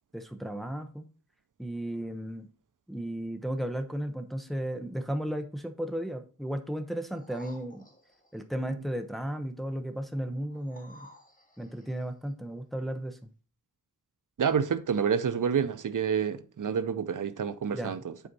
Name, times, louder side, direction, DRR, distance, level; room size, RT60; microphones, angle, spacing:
voice 1, 0.1-1.1 1.6-2.5 2.9-7.8 8.3-11.1 11.6-13.3 17.7-18.0, right 1 dB, ahead, 0.9 m, -34 dB
sound 1, 7.1-8.4 10.5-12.1 12.8-12.9, left 1 dB, 25° left, 2.0 m, -54 dB
voice 2, 14.4-18.1, right 7 dB, 80° right, 0.5 m, -28 dB
8.1 x 4.4 x 4.0 m
wide cardioid pair, 70°, 31 cm